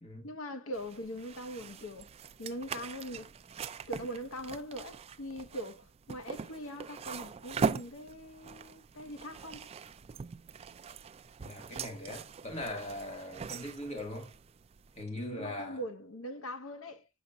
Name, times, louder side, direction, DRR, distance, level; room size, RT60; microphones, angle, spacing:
voice 1, 0.2-2.1 2.4-3.3 3.9-9.7 15.1-17.1, equal, 65° left, 0.9 m, -41 dB
sound 1, 0.7-15.0, right 5 dB, 30° right, 0.3 m, -41 dB
voice 2, 11.4-14.3 15.0-15.8, left 1 dB, 30° left, 2.1 m, -40 dB
7.1 x 5.7 x 2.6 m
head